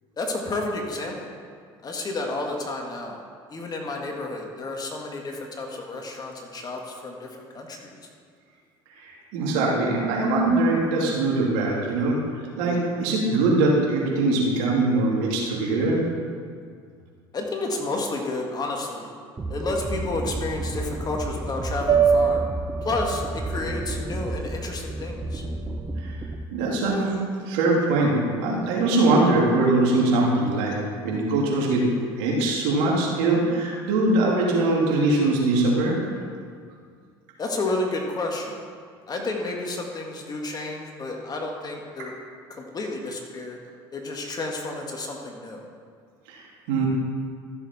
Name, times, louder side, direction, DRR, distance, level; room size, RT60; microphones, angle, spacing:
voice 1, 0.2-1.4 1.8-3.2 3.5-7.3 7.5-7.9 17.3-19.1 19.5-22.4 22.8-25.4 37.4-38.6 39.1-42.1 42.5-43.6 43.9-45.6, left 2 dB, 35° left, 1 dB, 2.0 m, -31 dB
voice 2, 9.0-12.2 12.6-16.0 26.0-26.2 26.5-27.2 27.5-30.7 31.0-31.9 32.2-36.0 46.3-46.4 46.7-46.9, right 2 dB, 75° right, -3 dB, 2.6 m, -22 dB
sound 1, 19.4-26.4, right 1 dB, 20° right, 0.8 m, -32 dB
sound 2, 21.9-26.1, right 6 dB, 40° right, 1.2 m, -26 dB
13.5 x 6.9 x 4.4 m, 2.1 s
hypercardioid pair, 75°, 12 cm